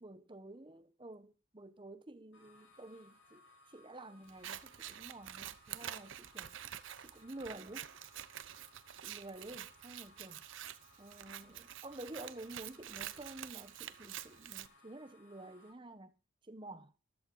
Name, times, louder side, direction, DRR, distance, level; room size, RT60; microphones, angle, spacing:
voice 1, 0.0-6.5 7.0-7.9 9.0-10.4 11.0-16.1 16.5-16.9, right 2 dB, 25° right, 1.0 m, -50 dB
sound 1, 2.3-15.7, left 1 dB, 75° left, 5.4 m, -64 dB
Scissors, 4.3-14.7, right 11 dB, 75° right, 0.7 m, -48 dB
14.0 x 11.5 x 3.9 m
head